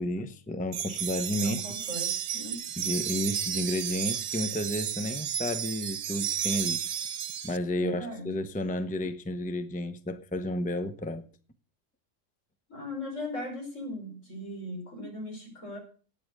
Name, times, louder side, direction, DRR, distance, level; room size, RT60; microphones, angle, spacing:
voice 1, 0.0-1.8 2.8-6.8 7.4-11.3, left 1 dB, 10° left, 0.7 m, -32 dB
sound 1, 0.7-7.6, right 10 dB, 85° right, 1.2 m, -32 dB
voice 2, 1.4-2.6 7.8-8.3 12.7-15.8, left 1 dB, 70° left, 5.7 m, -38 dB
12.0 x 9.4 x 6.6 m
omnidirectional pair, 1.3 m